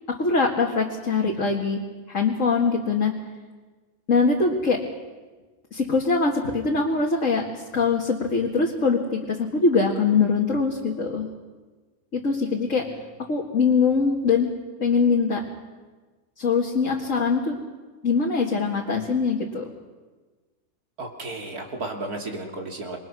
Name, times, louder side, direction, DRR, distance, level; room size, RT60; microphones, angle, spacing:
voice 1, 0.1-1.8 2.1-3.1 4.1-4.8 5.7-11.3 12.1-12.9 13.3-14.5 14.8-15.4 16.4-17.6 18.0-19.7, left 4 dB, 55° left, -2 dB, 2.4 m, -22 dB
voice 2, 21.0-23.0, right 2 dB, 75° right, 2 dB, 3.4 m, -33 dB
27.5 x 23.0 x 6.2 m, 1.3 s
omnidirectional pair, 1.6 m